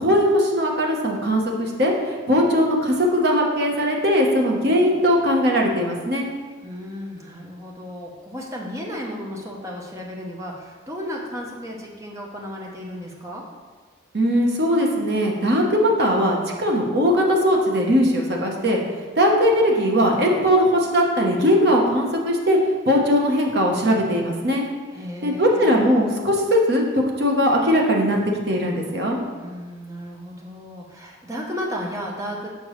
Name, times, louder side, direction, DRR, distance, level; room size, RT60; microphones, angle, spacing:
voice 1, 0.0-6.3 14.1-18.8 19.2-22.6 22.9-24.7 25.2-28.2 28.5-29.2, equal, 55° right, 0 dB, 0.9 m, -19 dB
voice 2, 6.6-13.4 24.9-26.1 29.4-32.5, equal, 15° right, -1 dB, 0.7 m, -34 dB
6.6 x 5.2 x 3.1 m, 1.5 s
head